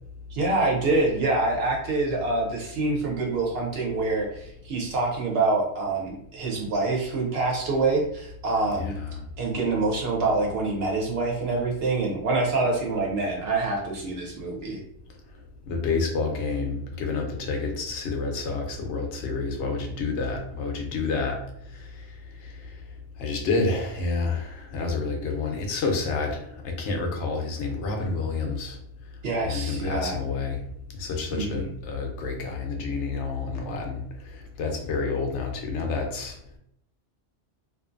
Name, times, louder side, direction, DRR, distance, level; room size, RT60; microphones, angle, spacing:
voice 1, 0.3-8.9 9.4-14.8 29.2-30.2 31.3-31.7, right 3 dB, 60° right, -1 dB, 0.9 m, -26 dB
voice 2, 8.7-9.2 15.7-21.4 22.4-22.5 23.2-28.8 29.4-30.6 31.0-34.0 34.6-36.4, left 4 dB, 85° left, 2 dB, 0.9 m, -29 dB
2.6 x 2.4 x 2.4 m, 0.72 s
omnidirectional pair, 1.2 m